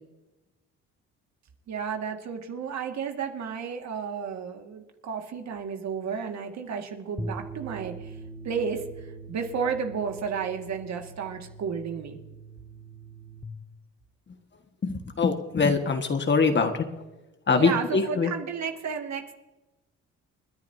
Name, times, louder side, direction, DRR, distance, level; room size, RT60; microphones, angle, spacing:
voice 1, 1.7-8.2 8.4-12.2 17.5-19.3, right 6 dB, 65° right, 4 dB, 2.1 m, -32 dB
sound 1, 7.2-13.4, right 3 dB, 5° left, 1.5 m, -42 dB
voice 2, 14.8-16.9 17.5-18.3, left 4 dB, 35° left, 6 dB, 1.7 m, -23 dB
29.0 x 10.5 x 2.8 m, 1.1 s
cardioid pair, 90°, 30 cm